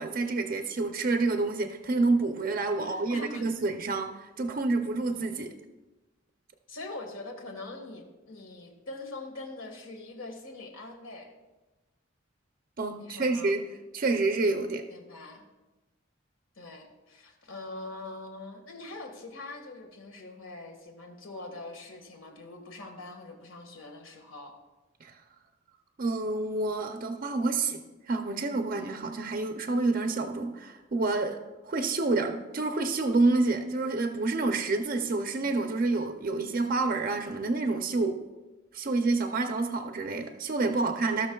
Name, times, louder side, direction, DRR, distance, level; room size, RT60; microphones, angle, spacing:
voice 1, 0.0-5.5 12.8-13.7 13.9-14.9 25.0-25.2 26.0-27.8 28.1-31.4 31.6-38.2 38.7-41.3, right 3 dB, 45° right, 5 dB, 0.5 m, -28 dB
voice 2, 2.8-3.5 6.7-11.3 13.0-13.5 14.9-15.5 16.5-24.5, left 2 dB, 85° left, 3 dB, 1.6 m, -43 dB
17.5 x 6.2 x 2.3 m, 1.1 s
head